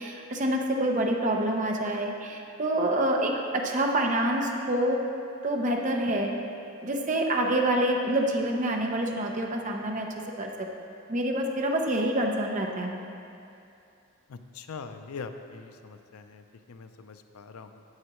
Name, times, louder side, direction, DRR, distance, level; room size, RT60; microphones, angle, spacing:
voice 1, 0.0-5.0 5.4-6.3 6.8-10.1 10.4-10.7 11.1-13.1, right 1 dB, 35° right, 1 dB, 0.6 m, -27 dB
voice 2, 14.3-17.8, left 5 dB, 80° left, 8 dB, 0.5 m, -43 dB
9.5 x 7.9 x 3.0 m, 2.6 s
head